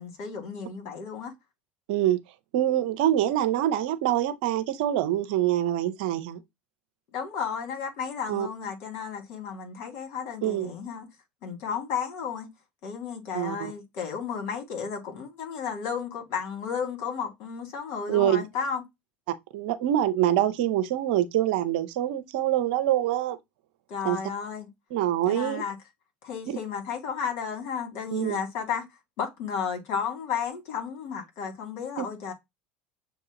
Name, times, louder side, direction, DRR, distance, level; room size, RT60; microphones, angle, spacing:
voice 1, 0.0-1.3 7.1-11.1 11.4-12.5 12.8-18.8 23.9-24.7 25.3-25.8 26.2-28.8 29.2-32.3, left 7 dB, 60° left, 2.2 m, -33 dB
voice 2, 1.9-2.2 2.5-6.4 8.3-8.5 10.4-10.7 13.3-13.7 18.1-18.4 19.3-23.4 24.0-24.2 24.9-25.6 28.1-28.4 32.0-32.1, right 12 dB, 70° right, 0.7 m, -25 dB
7.0 x 2.4 x 2.9 m
hypercardioid pair, 75°, 5 cm